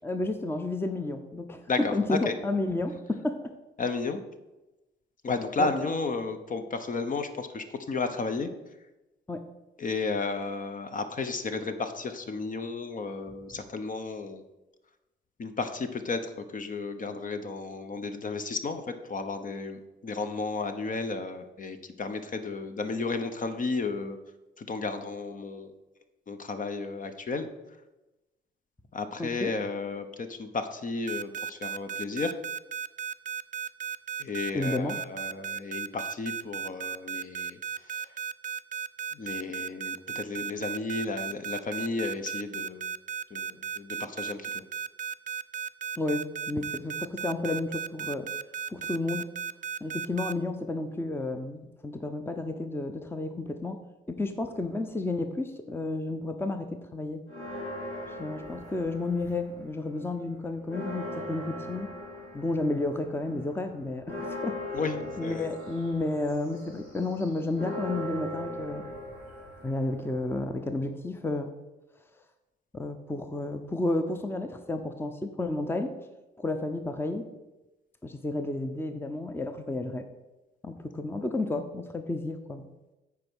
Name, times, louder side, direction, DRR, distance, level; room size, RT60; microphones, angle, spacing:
voice 1, 0.0-1.7 1.9-3.5 5.6-5.7 9.3-9.4 29.2-29.5 34.5-35.0 46.0-48.3 48.7-49.3 49.8-53.8 54.1-57.2 58.2-61.9 62.3-64.6 65.2-68.8 69.6-71.5 72.7-75.9 76.4-77.3 78.0-80.1 80.6-82.7, left 2 dB, 10° left, 7 dB, 0.7 m, -31 dB
voice 2, 1.7-2.3 3.8-4.2 5.2-8.5 9.8-14.4 15.4-24.2 24.6-25.7 26.3-27.5 28.9-32.3 34.2-38.1 39.1-42.9 43.3-44.6 64.7-65.5, left 4 dB, 40° left, 8 dB, 0.9 m, -33 dB
sound 1, 31.1-50.3, right 7 dB, 40° right, 0.4 m, -35 dB
sound 2, 57.3-59.7 60.0-70.5, left 1 dB, 80° left, 2.7 m, -40 dB
8.5 x 4.8 x 6.2 m, 1.0 s
cardioid pair, 90°, 20 cm